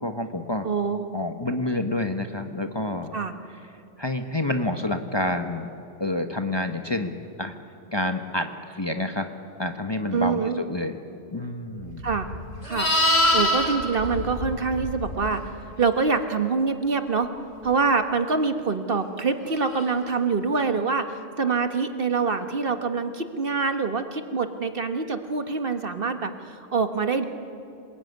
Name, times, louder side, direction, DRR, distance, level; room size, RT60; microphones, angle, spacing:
voice 1, 0.0-0.7 1.1-3.2 4.0-5.7 6.0-7.5 7.9-9.3 9.6-11.0 11.3-12.0, left 1 dB, 20° left, 6 dB, 1.1 m, -28 dB
voice 2, 0.6-1.1 3.1-3.3 10.1-10.6 12.0-12.3 12.6-15.5 15.8-17.3 17.6-27.2, right 4 dB, 50° right, 8 dB, 1.4 m, -25 dB
Livestock farm animals working animals, 12.0-15.3 19.7-19.9, left 1 dB, 85° left, 3.6 m, -24 dB
27.0 x 20.5 x 9.5 m, 2.7 s
omnidirectional pair, 1.3 m